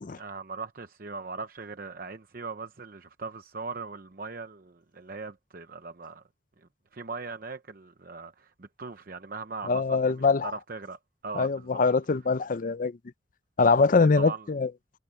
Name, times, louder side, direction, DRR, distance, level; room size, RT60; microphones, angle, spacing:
voice 1, 0.1-6.2 6.6-11.8 14.0-14.5, right 4 dB, 50° right, 0.8 m, -40 dB
voice 2, 9.7-10.5 11.4-13.0 13.6-14.7, left 4 dB, 45° left, 0.5 m, -23 dB
head